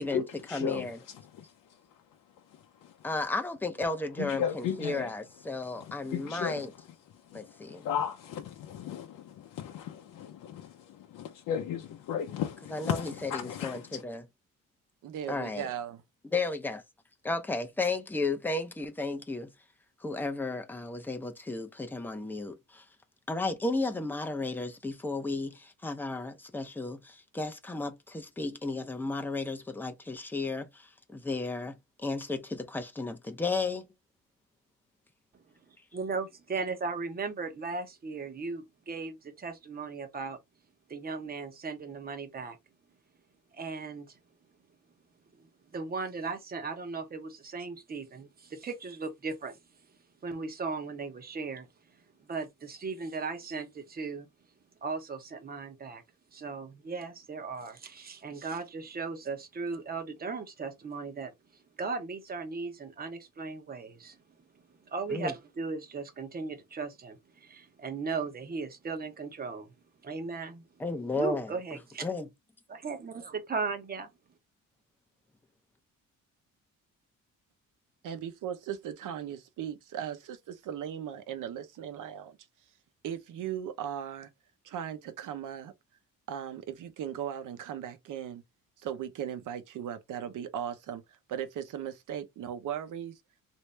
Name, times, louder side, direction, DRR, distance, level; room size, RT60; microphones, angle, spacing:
voice 1, 0.0-3.1 4.0-14.0, left 8 dB, 70° left, 0.6 m, -37 dB
voice 2, 0.5-1.0 3.0-6.7 7.3-7.9 12.7-13.3 13.6-14.2 15.3-15.7 16.3-16.8 17.2-19.5 20.0-22.8 23.3-33.8 65.1-65.3 70.8-71.5 72.0-72.3, left 3 dB, 5° left, 0.5 m, -33 dB
voice 3, 15.0-16.0 78.0-82.4 83.0-84.3 84.6-85.7 86.3-88.4 88.8-93.2, right 9 dB, 70° right, 0.8 m, -38 dB
voice 4, 35.7-40.4 40.9-42.6 43.5-44.2 45.4-45.5 45.7-49.6 50.2-51.7 52.2-54.3 54.8-56.0 56.3-61.3 61.8-64.2 64.8-69.7 70.0-70.6 71.1-72.1 72.7-74.1, right 4 dB, 30° right, 0.8 m, -37 dB
3.2 x 2.7 x 3.2 m
cardioid pair, 135°, 33 cm